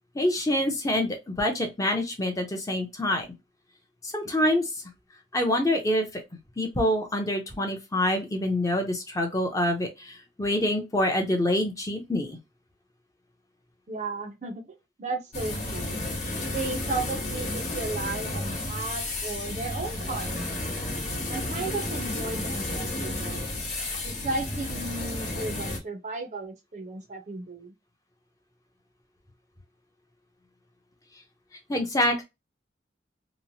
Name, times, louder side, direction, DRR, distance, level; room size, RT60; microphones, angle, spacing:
voice 1, 0.1-3.3 4.0-4.7 5.3-6.1 6.6-12.4 31.7-32.2, left 1 dB, 20° left, 0.5 m, -26 dB
voice 2, 13.9-14.6 15.0-16.0 16.5-20.4 21.3-23.5 24.0-27.7, right 3 dB, 40° right, 0.5 m, -34 dB
sound 1, 15.3-25.8, left 2 dB, 40° left, 1.0 m, -32 dB
2.9 x 2.0 x 2.6 m
head